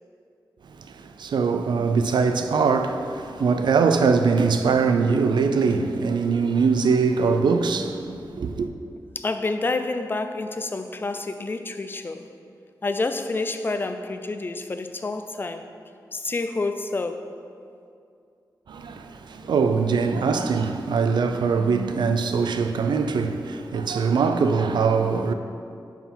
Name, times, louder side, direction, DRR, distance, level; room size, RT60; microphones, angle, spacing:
voice 1, 0.8-8.7 18.7-25.3, right 5 dB, 90° right, 0.4 m, -22 dB
voice 2, 9.2-12.3 12.8-15.7 16.1-17.3, left 3 dB, 30° left, 0.3 m, -28 dB
5.6 x 4.5 x 5.6 m
wide cardioid pair, 145°, 7 cm